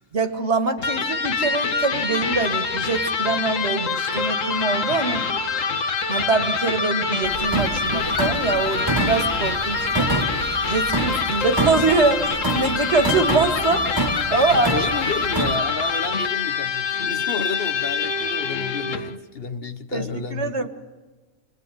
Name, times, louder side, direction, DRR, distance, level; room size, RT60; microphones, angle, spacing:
voice 1, 0.1-5.2 6.1-10.2 10.7-14.7 19.9-20.7, right 3 dB, 60° right, 2.2 m, -24 dB
Electric guitar, 0.8-19.2, left 5 dB, 90° left, 1.6 m, -25 dB
sound 1, 3.9-16.1, right 6 dB, 75° right, 1.6 m, -36 dB
sound 2, 7.2-15.6, right 2 dB, 20° right, 1.2 m, -28 dB
voice 2, 14.5-20.7, left 5 dB, 50° left, 1.2 m, -31 dB
28.0 x 21.5 x 9.2 m
omnidirectional pair, 1.3 m